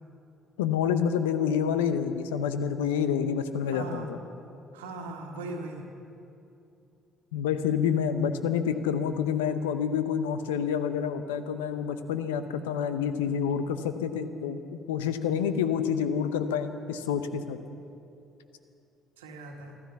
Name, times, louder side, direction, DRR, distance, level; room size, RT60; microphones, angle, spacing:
voice 1, 0.6-4.2 7.3-17.6, left 7 dB, 85° left, 10 dB, 0.7 m, -28 dB
voice 2, 3.6-4.1 4.7-5.9 19.2-19.8, right 2 dB, 85° right, 2 dB, 1.6 m, -39 dB
14.0 x 14.0 x 7.0 m, 2.7 s
hypercardioid pair, 55°, 0 cm